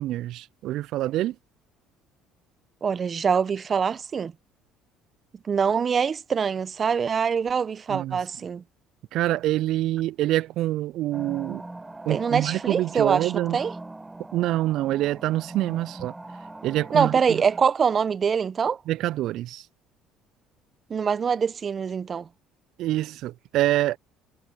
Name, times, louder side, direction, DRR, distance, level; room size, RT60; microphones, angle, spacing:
voice 1, 0.0-1.4 7.9-8.2 9.1-11.6 12.1-13.6 14.3-16.1 16.6-17.4 18.9-19.7 22.8-24.0, right 15 dB, 65° right, 0.3 m, -26 dB
voice 2, 2.8-4.3 5.5-8.6 12.1-13.7 16.9-18.8 20.9-22.3, right 6 dB, 40° right, 1.0 m, -24 dB
sound 1, 11.1-17.6, right 2 dB, 15° right, 4.4 m, -41 dB
hypercardioid pair, 65°, 0 cm